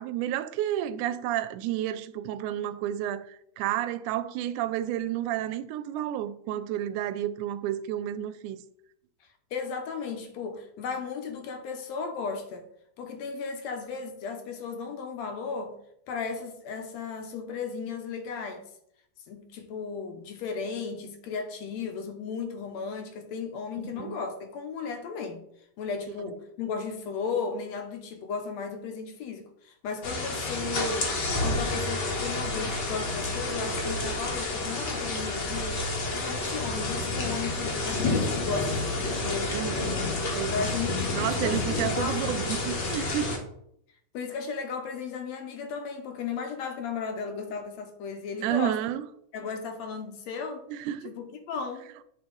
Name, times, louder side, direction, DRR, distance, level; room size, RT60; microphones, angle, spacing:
voice 1, 0.0-8.6 23.8-24.2 39.5-40.7 41.1-43.3 48.4-49.1 50.7-51.1, right 12 dB, 90° right, 2.0 m, -31 dB
voice 2, 9.2-12.7 13.0-15.8 16.1-18.7 19.3-25.4 25.8-31.1 31.4-35.8 36.1-40.0 40.5-42.3 44.1-48.8 49.3-50.7 51.0-51.9, left 5 dB, 70° left, 1.9 m, -35 dB
sound 1, 30.0-43.4, left 2 dB, 50° left, 1.3 m, -29 dB
9.0 x 4.4 x 3.8 m
omnidirectional pair, 3.4 m